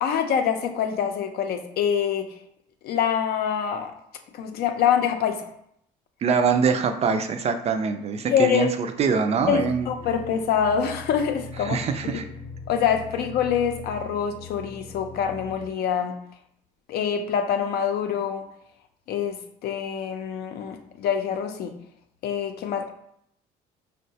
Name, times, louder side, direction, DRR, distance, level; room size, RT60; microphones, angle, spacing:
voice 1, 0.0-2.3 2.8-3.9 4.3-5.5 8.3-8.7 9.5-11.8 12.1-12.2 12.7-16.2 16.9-18.5 19.1-21.7 22.2-22.9, left 8 dB, 70° left, 6 dB, 0.5 m, -25 dB
voice 2, 6.2-8.7 9.0-9.9 11.7-12.3, right 5 dB, 40° right, 7 dB, 0.3 m, -23 dB
sound 1, 9.4-15.7, left 5 dB, 20° left, 0.6 m, -41 dB
4.5 x 2.1 x 2.7 m, 0.72 s
cardioid pair, 110°, 17 cm